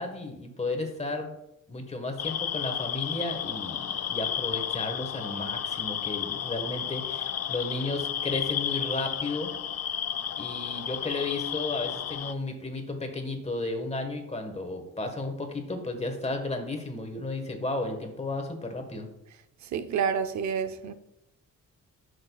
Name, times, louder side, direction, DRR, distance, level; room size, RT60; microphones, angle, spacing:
voice 1, 0.0-1.3 1.7-9.5 10.4-19.1, left 2 dB, 20° left, 1.4 m, -33 dB
sound 1, 2.2-12.3, left 9 dB, 55° left, 0.5 m, -32 dB
voice 2, 19.7-20.9, right 7 dB, 65° right, 0.6 m, -28 dB
10.5 x 6.5 x 2.3 m
cardioid pair, 110°, 31 cm